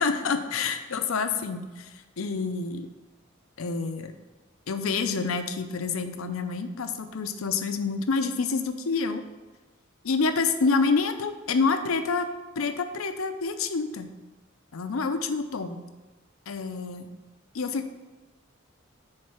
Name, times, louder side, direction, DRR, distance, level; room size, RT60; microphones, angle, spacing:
voice 1, 0.0-2.9 3.6-4.1 4.7-9.2 10.0-12.3 12.6-14.1 14.7-15.8 16.5-17.1 17.5-17.9, left 4 dB, 80° left, 9 dB, 0.6 m, -28 dB
6.5 x 4.4 x 5.7 m, 1.2 s
head